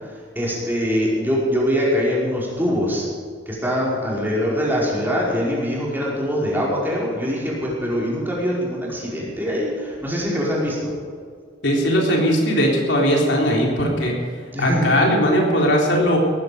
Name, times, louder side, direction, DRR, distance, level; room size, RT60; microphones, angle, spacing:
voice 1, 0.0-3.0 3.4-10.9 14.5-14.9, equal, 10° right, -5 dB, 5.1 m, -23 dB
voice 2, 11.6-14.2 14.6-16.2, equal, 75° left, -1 dB, 3.9 m, -19 dB
18.5 x 15.0 x 5.2 m, 2.1 s
head